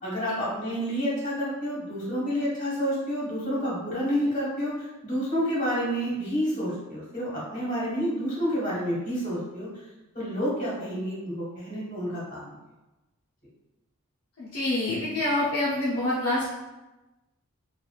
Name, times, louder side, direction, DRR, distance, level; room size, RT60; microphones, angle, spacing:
voice 1, 0.0-9.7 10.1-12.4, equal, 35° left, -7 dB, 1.4 m, -29 dB
voice 2, 14.4-16.5, left 1 dB, 70° left, -8 dB, 0.7 m, -26 dB
3.0 x 2.4 x 2.4 m, 1.0 s
head